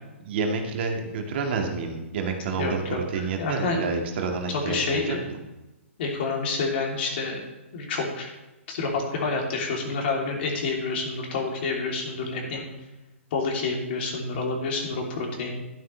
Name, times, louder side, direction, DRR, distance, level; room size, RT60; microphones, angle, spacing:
voice 1, 0.2-5.4, right 4 dB, 55° right, 2 dB, 1.9 m, -29 dB
voice 2, 2.6-3.8 4.5-5.2 6.0-7.4 7.7-8.3 8.7-12.6 13.3-15.6, left 3 dB, 55° left, 0 dB, 3.1 m, -28 dB
12.0 x 9.7 x 3.3 m, 1.0 s
hypercardioid pair, 125°, 7 cm